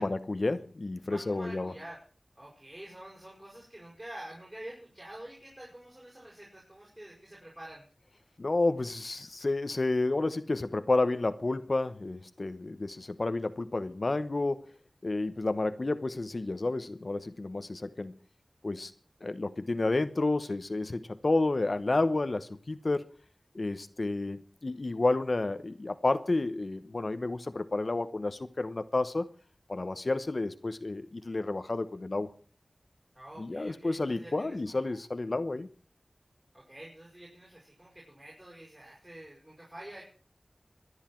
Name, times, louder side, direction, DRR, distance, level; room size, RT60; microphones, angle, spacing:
voice 1, 0.0-1.7 8.4-14.7 15.0-18.1 18.6-18.9 19.2-23.1 23.5-29.3 29.7-32.3 33.4-35.7, left 2 dB, 60° left, 1.0 m, -30 dB
voice 2, 1.0-2.0 2.3-7.8 33.1-35.0 36.5-40.0, right 1 dB, 25° right, 6.6 m, -47 dB
23.0 x 9.8 x 4.6 m
wide cardioid pair, 50°, 0 cm